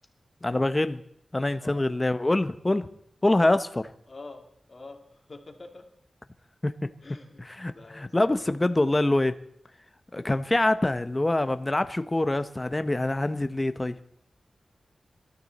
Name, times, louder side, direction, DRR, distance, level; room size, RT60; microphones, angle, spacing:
voice 1, 0.4-1.0 1.3-2.9 3.2-3.8 6.6-6.9 7.4-9.3 10.1-14.0, left 2 dB, 20° left, 11 dB, 0.7 m, -25 dB
voice 2, 4.1-4.4 4.7-5.9 7.0-7.4 7.7-8.6, left 3 dB, 40° left, 3 dB, 2.4 m, -46 dB
25.5 x 13.0 x 4.1 m, 0.72 s
wide cardioid pair, 95°, 0 cm